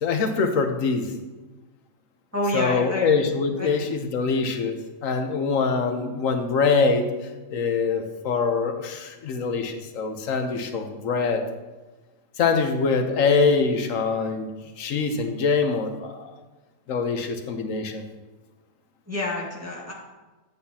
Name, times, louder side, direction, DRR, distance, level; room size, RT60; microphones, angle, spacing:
voice 1, 0.0-1.1 2.5-11.4 12.4-14.5 14.8-16.3 16.9-18.0, left 4 dB, 80° left, 6 dB, 1.2 m, -24 dB
voice 2, 2.3-3.2 3.6-3.7 19.1-19.9, left 1 dB, 10° right, -6 dB, 1.8 m, -28 dB
10.0 x 8.5 x 2.8 m, 1.2 s
omnidirectional pair, 1.4 m